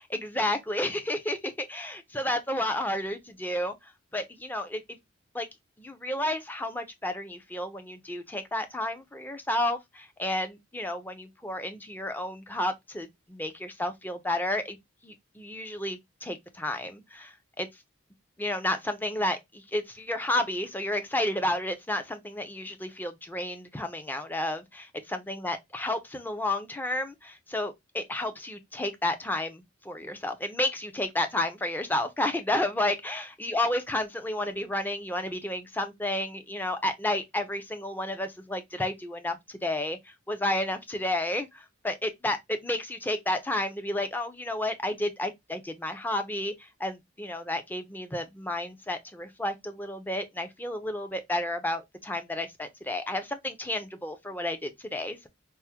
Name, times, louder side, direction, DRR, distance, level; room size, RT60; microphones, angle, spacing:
voice 1, 0.1-5.0 5.3-5.5 5.8-14.8 15.0-17.7 18.4-55.3, left 1 dB, 10° left, 0.4 m, -31 dB
3.4 x 2.1 x 2.8 m
head